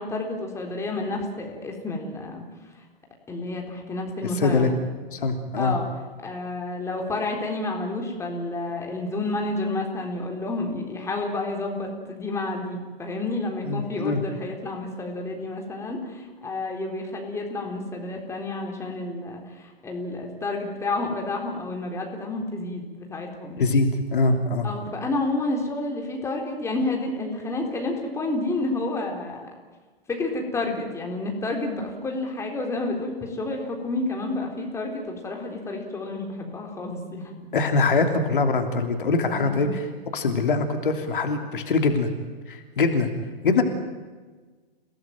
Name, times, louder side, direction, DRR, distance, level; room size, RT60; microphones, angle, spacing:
voice 1, 0.0-2.4 3.3-4.7 5.6-5.9 6.2-23.6 24.6-29.5 30.1-37.5 39.3-39.8, left 2 dB, 10° left, 1 dB, 4.0 m, -30 dB
voice 2, 4.3-4.7 5.1-5.7 13.6-14.2 23.6-24.7 37.5-39.9 40.1-42.1 42.5-43.1 43.4-43.6, left 3 dB, 60° left, 5 dB, 3.1 m, -23 dB
29.5 x 18.5 x 9.1 m, 1.4 s
figure-of-eight pair, 115°, 30 cm